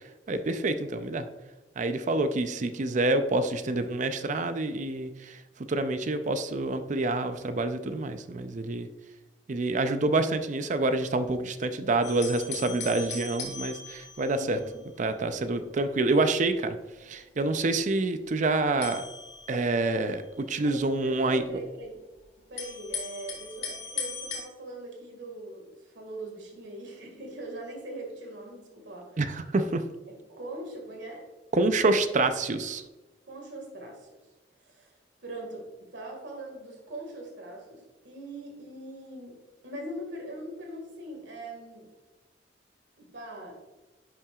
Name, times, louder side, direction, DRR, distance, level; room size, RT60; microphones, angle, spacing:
voice 1, 0.3-1.3 1.8-5.4 5.7-8.9 9.5-14.6 15.0-16.8 17.1-19.0 19.5-21.4 29.2-29.8 31.5-32.8, right 2 dB, 45° right, 9 dB, 0.5 m, -27 dB
sound 1, 12.0-15.0 15.3-15.5 16.2-17.2 18.8-20.7 21.5-21.6 22.6-24.4, left 5 dB, 40° left, 1.6 m, -39 dB
voice 2, 14.3-14.9 20.6-22.0 22.5-29.2 30.1-31.2 33.3-34.2 34.6-39.4 39.6-41.9 43.0-43.6, right 1 dB, 90° right, 0 dB, 1.8 m, -41 dB
10.5 x 5.7 x 2.4 m, 1.1 s
head